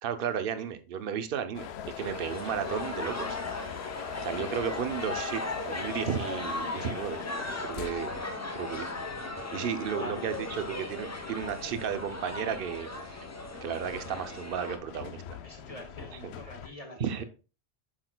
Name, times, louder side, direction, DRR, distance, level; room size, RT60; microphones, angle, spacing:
voice 1, 0.0-1.7 2.0-3.4 4.2-7.2 7.7-8.1 8.5-8.9 9.5-13.2 13.6-15.4 16.2-16.3 17.0-17.2, right 8 dB, 60° right, 0.8 m, -33 dB
sound 1, 1.5-16.7, left 9 dB, 70° left, 0.8 m, -42 dB
sound 2, 2.0-14.8, left 2 dB, 15° left, 0.7 m, -38 dB
voice 2, 9.9-10.3 15.4-17.2, left 1 dB, 35° left, 1.5 m, -45 dB
8.8 x 6.0 x 2.2 m
omnidirectional pair, 1.2 m